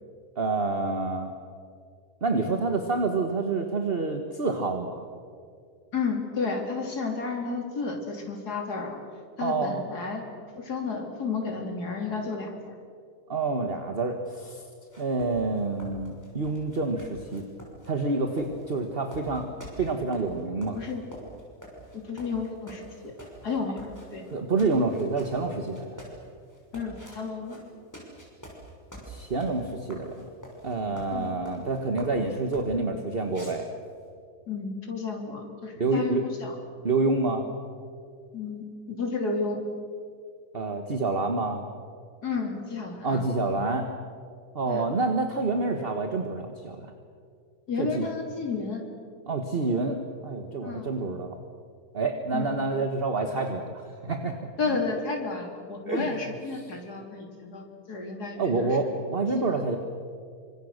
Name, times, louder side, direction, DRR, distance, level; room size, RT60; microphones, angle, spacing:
voice 1, 0.4-1.3 2.2-5.0 9.4-9.8 13.3-14.7 15.0-17.4 17.9-19.5 19.8-20.8 24.3-26.0 29.1-30.3 30.6-33.7 35.8-36.2 36.8-37.5 40.5-41.6 43.0-43.9 44.6-46.9 47.8-48.1 49.3-51.4 51.9-54.8 55.9-56.1 58.4-59.8, right 3 dB, 40° right, 5 dB, 1.7 m, -28 dB
voice 2, 5.9-9.0 9.4-10.3 10.6-12.7 20.7-21.0 21.9-23.1 23.4-23.8 24.1-24.2 26.7-27.6 31.1-31.3 34.5-36.1 36.4-36.6 38.3-39.6 42.2-43.2 44.6-44.8 47.7-48.8 50.6-50.9 52.3-52.5 54.6-58.9 59.3-59.6, left 4 dB, 85° left, 2 dB, 3.6 m, -32 dB
sound 1, 14.9-32.8 33.3-34.1, right 1 dB, 10° left, 6.2 m, -46 dB
26.5 x 26.0 x 6.6 m, 2.2 s
omnidirectional pair, 1.7 m